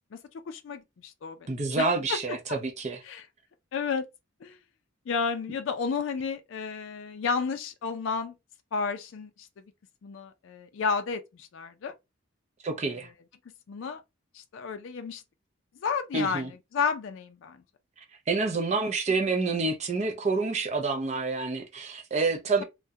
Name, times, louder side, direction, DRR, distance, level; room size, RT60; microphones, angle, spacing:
voice 1, 0.5-2.6 3.0-3.3 3.7-4.0 4.4-4.6 5.1-8.3 8.7-9.5 10.0-11.9 12.8-13.0 13.7-14.0 14.3-15.2 15.8-17.6, left 5 dB, 70° left, 0.4 m, -32 dB
voice 2, 1.5-3.0 12.6-13.1 16.1-16.5 18.3-22.6, right 3 dB, 35° right, 0.5 m, -28 dB
2.3 x 2.1 x 2.7 m
head